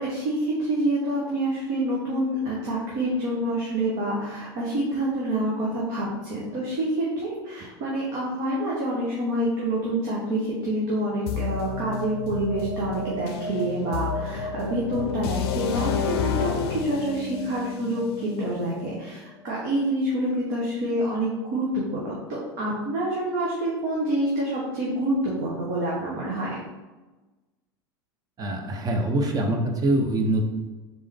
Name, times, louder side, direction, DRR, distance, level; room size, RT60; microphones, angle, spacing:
voice 1, 0.0-26.6, right 1 dB, 60° right, -5 dB, 1.2 m, -27 dB
sound 1, 11.3-19.1, left 6 dB, 70° left, 0.5 m, -30 dB
voice 2, 28.4-30.4, right 1 dB, 30° right, 3 dB, 0.8 m, -24 dB
3.9 x 3.6 x 3.4 m, 1.2 s
hypercardioid pair, 90°, 13 cm